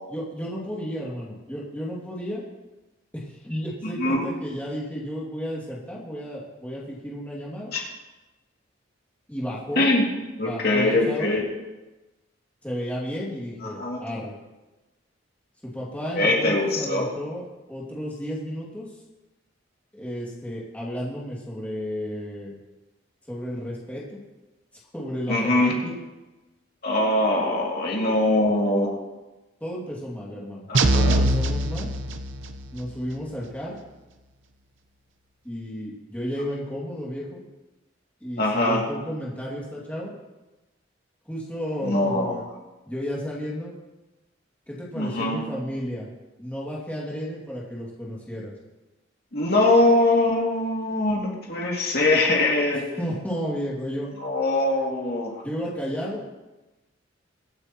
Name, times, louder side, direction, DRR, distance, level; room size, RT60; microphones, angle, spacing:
voice 1, 0.1-2.4 3.1-7.7 9.3-9.9 10.4-11.3 12.6-14.3 15.6-18.9 19.9-22.6 23.3-24.2 24.9-25.9 29.6-30.7 30.9-31.9 32.7-33.8 35.4-37.4 38.2-40.1 41.3-42.4 42.9-43.7 44.7-46.1 46.4-48.5 52.7-54.1 55.4-56.3, equal, 10° left, -5 dB, 2.4 m, -33 dB
voice 2, 3.8-4.2 7.7-7.8 9.8-10.0 10.4-11.4 13.6-14.0 16.1-17.1 25.3-25.7 26.8-28.9 30.7-31.2 38.4-38.8 41.8-42.4 44.9-45.4 49.3-53.0 54.2-55.3, left 2 dB, 55° left, -2 dB, 2.6 m, -22 dB
sound 1, 30.7-32.6, right 1 dB, 75° right, 0.8 m, -22 dB
24.0 x 8.6 x 3.0 m, 1.1 s
head